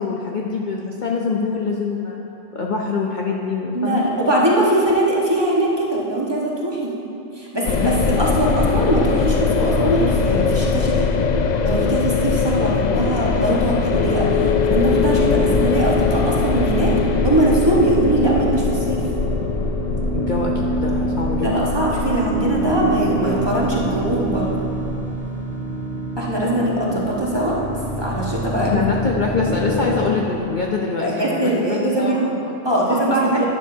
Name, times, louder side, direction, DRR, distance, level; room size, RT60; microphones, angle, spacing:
voice 1, 0.0-2.2 2.5-4.1 12.6-12.9 20.1-21.5 28.6-33.5, left 4 dB, 50° left, -2 dB, 0.7 m, -24 dB
voice 2, 3.7-6.9 7.4-11.1 11.6-16.9 17.2-19.0 21.4-24.5 26.2-27.6 28.0-28.8 31.0-32.2 32.6-33.5, right 1 dB, 20° right, -5 dB, 1.4 m, -21 dB
sound 1, 7.6-25.2, left 5 dB, 80° left, 0.4 m, -22 dB
sound 2, 13.9-30.1, left 1 dB, 10° left, 1.2 m, -26 dB
11.5 x 10.0 x 2.7 m, 2.8 s
omnidirectional pair, 1.3 m